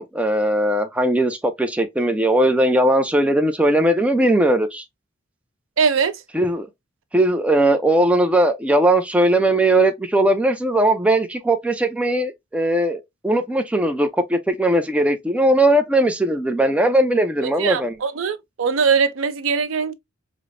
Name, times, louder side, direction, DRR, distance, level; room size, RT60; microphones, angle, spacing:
voice 1, 0.0-4.8 6.3-6.7 7.1-18.0, right 1 dB, 5° right, 0.3 m, -19 dB
voice 2, 5.8-6.2 17.4-19.9, right 5 dB, 75° right, 0.5 m, -21 dB
4.9 x 2.0 x 2.5 m
head